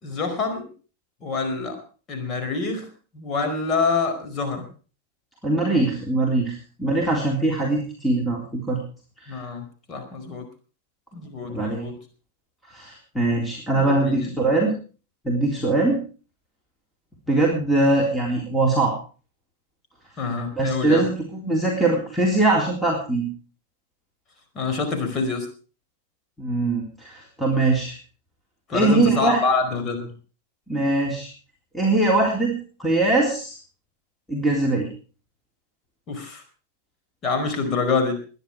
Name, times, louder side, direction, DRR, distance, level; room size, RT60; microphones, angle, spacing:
voice 1, 0.0-0.7 1.2-1.8 2.1-2.9 3.1-4.7 9.3-10.4 11.1-11.9 13.7-14.4 20.2-21.1 24.5-25.5 28.7-30.1 36.1-36.4 37.2-38.2, left 4 dB, 30° left, 5 dB, 4.8 m, -26 dB
voice 2, 5.4-8.8 9.2-9.4 11.5-11.9 12.7-14.7 15.3-16.0 17.3-19.0 20.6-23.3 26.4-28.0 28.7-29.4 30.7-31.3 31.7-33.6 34.3-34.9, right 2 dB, 5° left, -1 dB, 3.6 m, -22 dB
21.5 x 10.0 x 4.8 m, 0.38 s
figure-of-eight pair, 90°, 0 cm